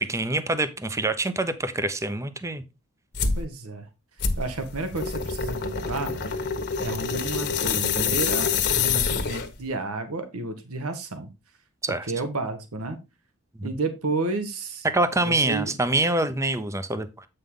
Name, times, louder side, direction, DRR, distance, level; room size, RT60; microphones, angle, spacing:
voice 1, 0.0-2.6 11.8-12.1 13.6-13.7 14.8-17.3, right 2 dB, 15° right, 12 dB, 0.7 m, -25 dB
sound 1, 3.1-3.4 4.2-9.6, left 6 dB, 50° left, 1.3 m, -26 dB
voice 2, 3.3-3.9 4.2-6.2 6.8-11.3 11.9-13.0 13.6-14.8 15.2-15.7, right 3 dB, 75° right, 8 dB, 1.3 m, -31 dB
8.2 x 5.5 x 3.7 m, 0.26 s
head